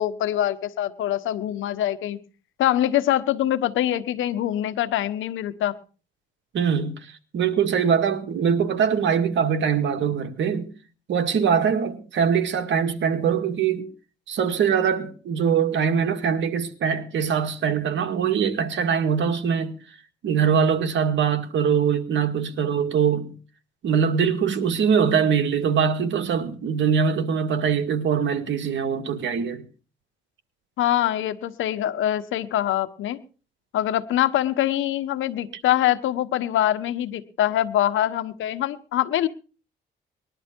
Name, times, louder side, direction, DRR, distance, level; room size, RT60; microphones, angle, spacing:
voice 1, 0.0-2.2 2.6-5.7 30.8-33.2 33.7-39.3, left 12 dB, 80° left, 1.2 m, -24 dB
voice 2, 6.5-10.7 11.1-13.9 14.3-19.7 20.2-23.3 23.8-29.7, right 7 dB, 70° right, 2.0 m, -22 dB
20.5 x 11.5 x 4.5 m
cardioid pair, 90°, 20 cm